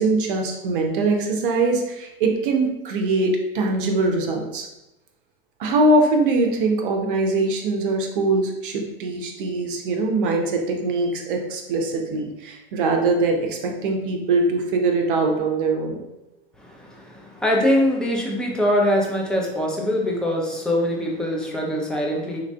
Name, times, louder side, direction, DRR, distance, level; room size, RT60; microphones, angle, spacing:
voice 1, 0.0-4.7 5.6-16.0, right 2 dB, 60° right, 2 dB, 0.6 m, -22 dB
voice 2, 16.6-22.4, left 1 dB, ahead, -2 dB, 0.4 m, -23 dB
3.2 x 2.4 x 2.2 m, 0.92 s
figure-of-eight pair, 80°, 30 cm